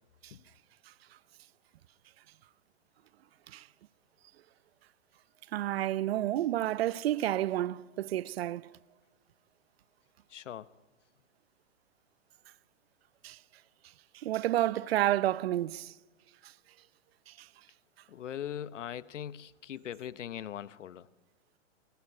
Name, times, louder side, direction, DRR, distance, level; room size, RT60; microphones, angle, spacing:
voice 1, 5.5-8.7 13.2-13.4 14.1-15.9 17.3-17.5, right 13 dB, 55° right, 0.8 m, -30 dB
voice 2, 10.3-10.7 18.1-21.1, left 10 dB, 80° left, 1.0 m, -40 dB
28.0 x 20.5 x 9.8 m
hypercardioid pair, 140°, 36 cm